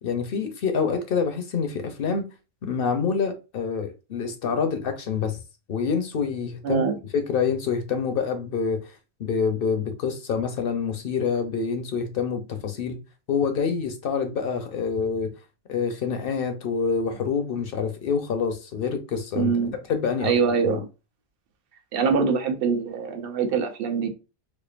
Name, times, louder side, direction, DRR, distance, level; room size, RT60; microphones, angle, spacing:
voice 1, 0.0-2.3 2.6-5.4 5.7-6.8 7.1-8.9 9.2-13.0 13.3-15.3 15.7-19.5 19.9-20.3 20.6-20.8, left 6 dB, 55° left, 0.7 m, -26 dB
voice 2, 19.4-19.8 20.2-20.9 21.9-24.1, right 6 dB, 55° right, 0.7 m, -24 dB
4.3 x 2.5 x 2.4 m
omnidirectional pair, 1.4 m